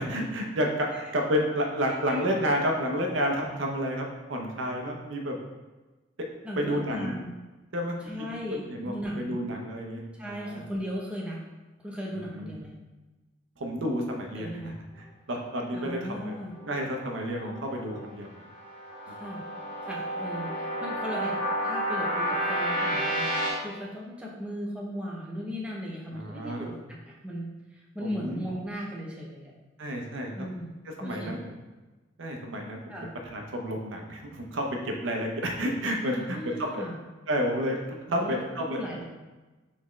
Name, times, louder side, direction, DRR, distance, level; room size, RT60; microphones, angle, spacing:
voice 1, 0.0-5.4 6.6-7.1 7.7-10.6 12.1-12.5 13.6-16.0 16.2-16.4 16.7-18.4 19.1-19.2 26.1-26.7 28.0-28.4 29.8-30.5 31.0-31.6 32.2-32.8 33.3-36.8 37.3-39.0, equal, 85° right, 1 dB, 0.7 m, -31 dB
voice 2, 2.0-2.4 6.4-7.3 8.0-9.4 10.2-11.4 11.8-12.7 14.4-14.8 15.7-16.6 19.2-19.4 19.9-21.4 21.6-23.3 23.6-26.7 27.1-29.5 30.3-31.4 32.9-33.1 36.1-37.0 38.1-39.0, equal, 5° right, -4 dB, 0.7 m, -37 dB
sound 1, 15.7-18.1 18.4-23.5, equal, 50° left, 1.3 m, -31 dB
4.1 x 3.5 x 3.1 m, 1.2 s
head